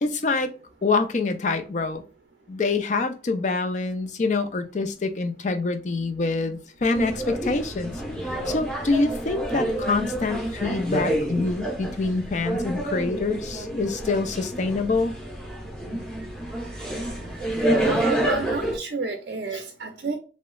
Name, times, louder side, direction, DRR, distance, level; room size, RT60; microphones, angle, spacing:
voice 1, 0.0-0.5 0.8-2.0 2.5-7.9 8.2-15.1, left 3 dB, 40° left, 8 dB, 0.4 m, -26 dB
sound 1, 6.9-18.8, right 1 dB, 5° left, 0.8 m, -28 dB
voice 2, 8.8-9.1 17.0-17.4 17.8-20.2, right 4 dB, 55° right, 4 dB, 0.5 m, -31 dB
3.0 x 3.0 x 2.3 m, 0.34 s
head